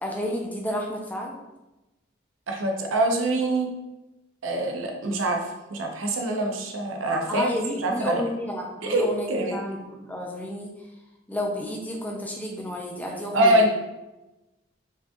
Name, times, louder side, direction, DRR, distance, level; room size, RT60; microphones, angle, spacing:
voice 1, 0.0-1.4 7.3-10.7 11.3-13.7, left 1 dB, 10° left, 0 dB, 0.4 m, -31 dB
voice 2, 2.5-3.7 4.4-7.5 7.8-8.2 8.8-9.6 13.3-13.7, right 1 dB, 90° right, 2 dB, 0.6 m, -24 dB
4.7 x 2.7 x 2.3 m, 1.0 s
head